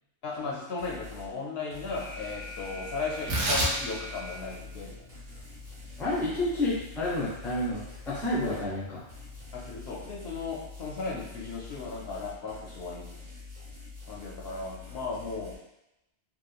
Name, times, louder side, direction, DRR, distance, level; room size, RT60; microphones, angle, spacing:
voice 1, 0.2-5.1 8.4-8.6 9.5-13.3 14.1-15.5, left 4 dB, 70° left, -3 dB, 0.8 m, -36 dB
sound 1, 0.8-1.3 1.7-8.7 9.1-15.6, left 4 dB, 45° right, 0.9 m, -46 dB
Alarm, 1.9-4.9, equal, 90° left, 0.9 m, -43 dB
Tearing, 3.1-9.8, right 1 dB, 90° right, 1.0 m, -35 dB
voice 2, 6.0-9.0, left 1 dB, 5° left, -7 dB, 0.4 m, -30 dB
2.9 x 2.2 x 2.3 m, 0.89 s
omnidirectional pair, 1.2 m